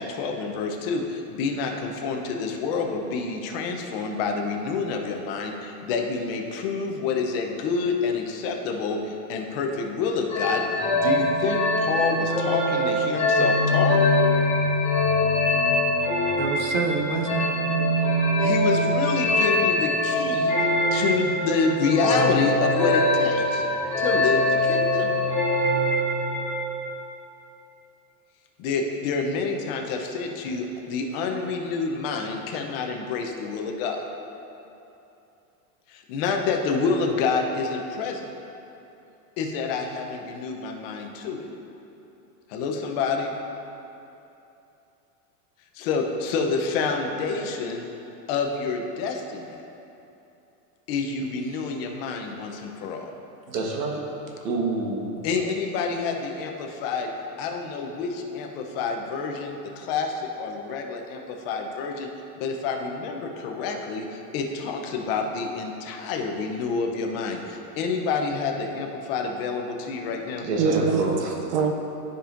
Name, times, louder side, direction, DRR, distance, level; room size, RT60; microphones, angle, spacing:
voice 1, 0.0-14.0 18.4-20.6 20.9-23.6 24.0-25.1 28.6-34.0 35.9-38.3 39.4-41.5 42.5-43.3 45.7-47.9 48.3-49.6 50.9-53.1 55.2-57.1 57.4-62.1 62.4-70.5, left 4 dB, 40° left, 2 dB, 0.6 m, -28 dB
sound 1, 10.3-26.7, left 1 dB, 15° left, 1.1 m, -23 dB
voice 2, 16.4-17.4 70.6-71.0 71.5-71.7, right 5 dB, 40° right, 4 dB, 0.5 m, -24 dB
voice 3, 53.5-54.0 54.4-55.3 70.4-71.3, right 3 dB, 85° right, 0 dB, 1.4 m, -27 dB
12.5 x 5.1 x 2.5 m, 2.8 s
supercardioid pair, 165°, 47 cm